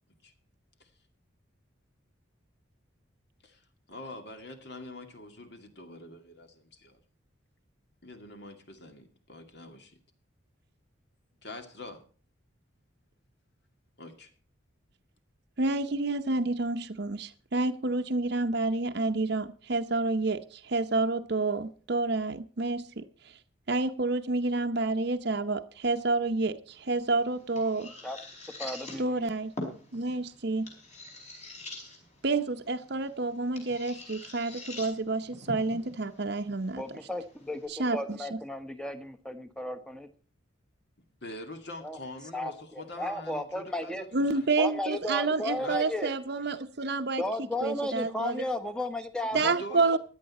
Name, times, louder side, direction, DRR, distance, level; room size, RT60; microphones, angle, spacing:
voice 1, 3.9-7.0 8.0-9.7 11.4-12.1 14.0-14.3 41.2-44.5 45.5-45.8 49.3-50.0, left 1 dB, 55° left, 7 dB, 2.3 m, -44 dB
voice 2, 15.6-23.0 23.7-27.9 29.0-29.5 29.9-30.7 32.2-36.8 37.7-38.4 44.1-47.2 47.6-48.4 49.3-50.0, right 3 dB, 55° right, 6 dB, 0.8 m, -29 dB
sound 1, 26.7-37.7, left 1 dB, 35° left, 4.9 m, -45 dB
voice 3, 28.6-29.3 36.8-40.1 41.8-42.0 42.3-44.0 44.6-46.1 47.2-50.0, left 1 dB, 5° left, 8 dB, 1.1 m, -34 dB
16.0 x 10.5 x 4.2 m, 0.41 s
head